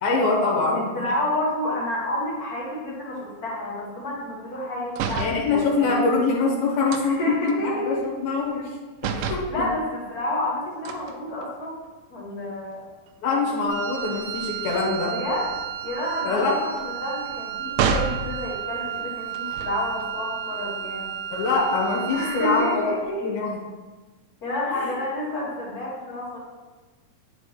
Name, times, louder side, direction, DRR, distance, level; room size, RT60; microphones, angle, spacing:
voice 1, 0.0-0.9 5.2-8.8 9.1-9.4 13.2-15.1 16.2-16.5 21.3-22.9 23.2-23.6, left 3 dB, 85° left, -4 dB, 3.2 m, -24 dB
voice 2, 0.7-6.0 7.0-8.0 9.5-11.8 12.1-12.8 15.1-15.4 15.8-16.7 17.0-21.2 22.1-23.4 24.4-26.4, left 1 dB, 60° left, -5 dB, 1.0 m, -30 dB
sound 1, 4.9-5.4 6.9-8.7 9.0-9.5 10.9-11.9 12.4-12.6 12.9-18.3 19.3-20.0, right 6 dB, 80° right, 2.1 m, -32 dB
Wind instrument woodwind instrument, 13.7-22.9, right 9 dB, 60° right, 1.8 m, -33 dB
9.5 x 6.4 x 3.1 m, 1.2 s
omnidirectional pair, 4.2 m